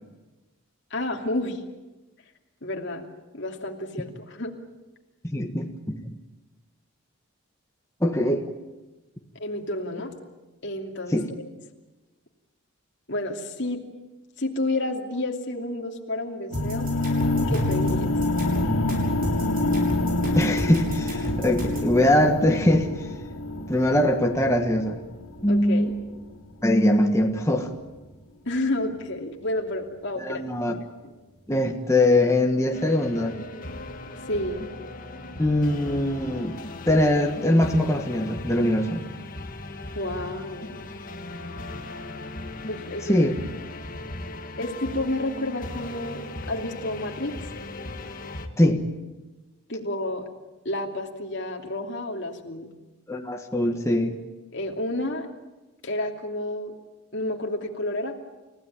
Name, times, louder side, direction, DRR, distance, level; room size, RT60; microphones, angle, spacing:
voice 1, 0.9-1.6 2.6-4.5 9.4-10.1 10.6-11.2 13.1-13.8 14.4-16.9 17.5-18.1 25.5-25.9 28.5-30.4 31.0-31.1 34.3-34.7 39.9-40.8 42.7-43.3 44.6-46.2 46.5-47.4 49.7-50.2 50.6-52.7 54.5-55.3 55.8-56.7 57.1-58.2, left 1 dB, 55° left, 1 dB, 2.8 m, -30 dB
voice 2, 5.2-6.1 8.0-8.5 11.1-11.3 20.3-22.9 23.7-25.0 25.4-25.9 26.6-27.7 30.2-30.8 31.5-33.4 35.4-36.6 36.9-39.0 43.1-43.4 48.6-48.9 53.1-54.2, left 1 dB, 15° left, 3 dB, 1.5 m, -22 dB
sound 1, 16.5-26.5, left 2 dB, 85° left, 2.9 m, -27 dB
sound 2, 16.5-21.9, equal, 40° right, 7.2 m, -32 dB
sound 3, 32.7-48.5, left 2 dB, 40° left, 1.9 m, -38 dB
29.5 x 16.0 x 9.0 m, 1.1 s
head